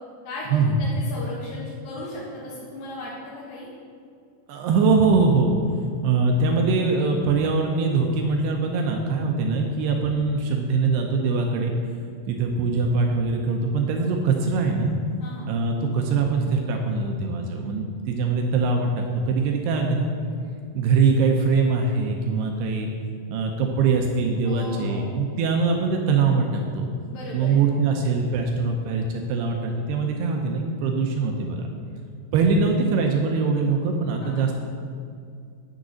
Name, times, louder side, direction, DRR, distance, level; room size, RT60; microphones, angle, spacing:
voice 1, 0.2-3.7 15.2-15.5 24.4-25.2 27.1-27.6 34.2-34.5, left 1 dB, 65° left, -6 dB, 2.6 m, -37 dB
voice 2, 4.5-5.5 6.0-11.7 12.3-15.0 15.5-20.1 20.7-22.9 23.3-26.9 27.3-31.7 32.3-34.5, right 4 dB, 80° right, 2 dB, 2.5 m, -22 dB
9.9 x 6.6 x 6.2 m, 2.3 s
omnidirectional pair, 5.4 m